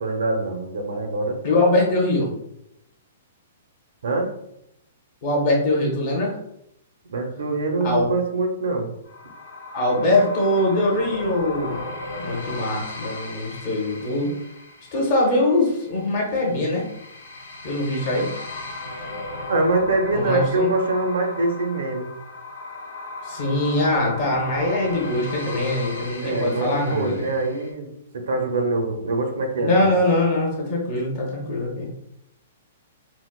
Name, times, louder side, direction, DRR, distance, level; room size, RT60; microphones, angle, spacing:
voice 1, 0.0-1.4 4.0-4.3 7.1-8.9 19.5-22.1 26.2-29.9, right 2 dB, 75° right, 3 dB, 0.6 m, -24 dB
voice 2, 1.4-2.3 5.2-6.4 7.8-8.1 9.7-11.8 12.2-14.3 14.9-16.9 17.6-18.3 20.1-20.7 23.2-27.2 29.6-31.9, left 1 dB, 40° left, -2 dB, 0.9 m, -22 dB
sound 1, 9.0-27.7, left 2 dB, 75° left, 0.9 m, -36 dB
4.0 x 2.1 x 2.3 m, 0.78 s
hypercardioid pair, 170°, 0 cm